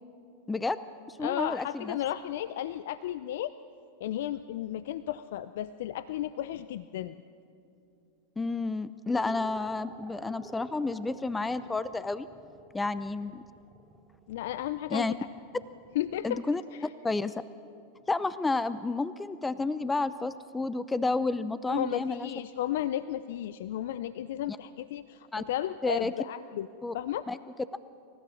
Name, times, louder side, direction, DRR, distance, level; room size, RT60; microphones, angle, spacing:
voice 1, 0.5-0.8 1.1-2.0 8.4-12.3 12.7-13.4 14.9-15.1 16.2-17.3 18.1-22.3 24.5-24.6 25.3-25.4 25.8-26.1 26.8-26.9 27.3-27.4, left 3 dB, 10° left, 15 dB, 0.7 m, -31 dB
voice 2, 1.2-3.5 4.0-7.1 14.3-15.2 15.9-16.4 16.7-16.9 21.7-26.7 26.9-27.2, left 12 dB, 70° left, 14 dB, 0.5 m, -33 dB
sound 1, 9.1-16.1, right 4 dB, 25° right, 2.9 m, -51 dB
28.5 x 15.0 x 7.2 m, 2.6 s
hypercardioid pair, 100°, 0 cm